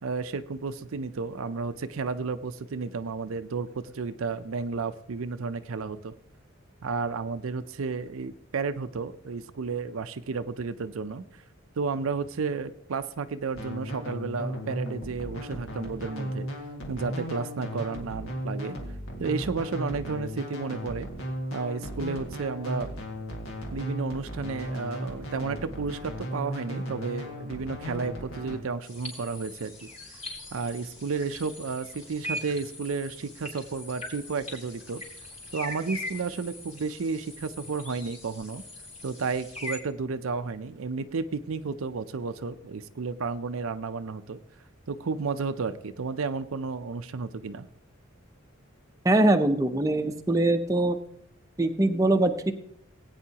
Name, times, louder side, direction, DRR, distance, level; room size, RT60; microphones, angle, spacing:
voice 1, 0.0-6.1 6.8-11.2 11.8-16.5 16.9-18.7 19.2-21.1 21.5-22.9 23.7-29.9 30.5-35.0 35.5-38.6 39.0-44.4 44.9-47.7, right 4 dB, 75° right, 10 dB, 0.5 m, -32 dB
sound 1, 13.5-28.6, equal, 70° left, 1.9 m, -36 dB
sound 2, 28.8-39.8, left 1 dB, 30° left, 4.0 m, -41 dB
voice 2, 49.0-51.0 51.6-52.5, right 2 dB, 15° right, 5 dB, 0.7 m, -22 dB
19.0 x 9.0 x 2.9 m, 0.69 s
head